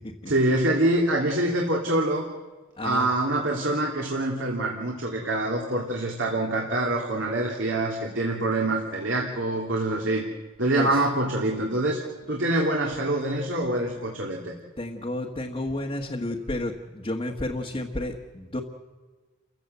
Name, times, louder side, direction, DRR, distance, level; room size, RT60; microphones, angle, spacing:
voice 1, 0.3-2.3 2.8-10.2 10.6-14.5, right 1 dB, 65° right, 0 dB, 2.6 m, -25 dB
voice 2, 2.8-3.1 10.7-11.1 14.8-18.6, left 1 dB, 25° left, -1 dB, 1.4 m, -31 dB
29.5 x 15.5 x 7.9 m, 1.3 s
head